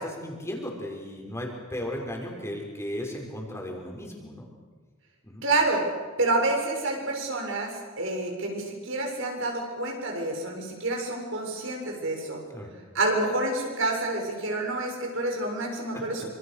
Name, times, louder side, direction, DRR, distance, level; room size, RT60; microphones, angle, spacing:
voice 1, 0.0-4.5 5.2-5.5 12.5-12.7 15.9-16.2, left 1 dB, 15° left, 1 dB, 5.5 m, -36 dB
voice 2, 5.4-5.8 6.2-12.4 12.9-16.3, right 2 dB, 65° right, 1 dB, 7.1 m, -28 dB
27.5 x 26.5 x 6.6 m, 1.4 s
head